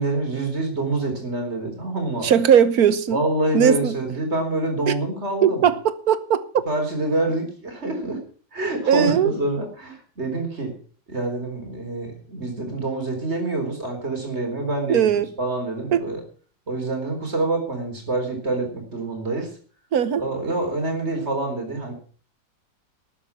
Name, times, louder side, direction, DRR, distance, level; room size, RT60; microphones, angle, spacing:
voice 1, 0.0-2.3 3.1-5.6 6.7-8.2 8.5-10.7 11.1-16.2 16.7-19.5 20.2-21.9, right 2 dB, 35° right, 4.3 m, -26 dB
voice 2, 2.2-3.2 3.5-4.0 4.9-5.0 5.4-6.6 8.9-9.3 14.9-15.3 15.9-16.0 19.9-20.2, right 8 dB, 60° right, 1.4 m, -19 dB
12.5 x 9.2 x 7.0 m
omnidirectional pair, 2.0 m